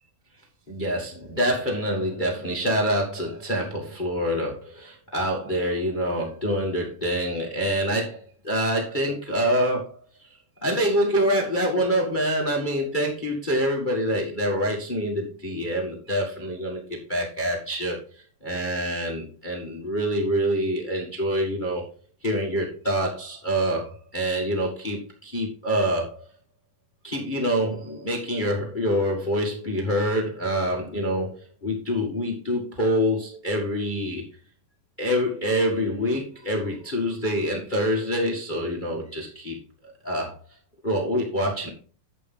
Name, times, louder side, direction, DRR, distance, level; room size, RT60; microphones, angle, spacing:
voice 1, 0.7-10.3 10.6-21.8 22.2-26.2 27.0-34.2 35.0-39.6 39.8-40.3 40.8-41.7, equal, 55° left, -1 dB, 0.5 m, -26 dB
8.2 x 7.9 x 3.8 m, 0.41 s
omnidirectional pair, 4.1 m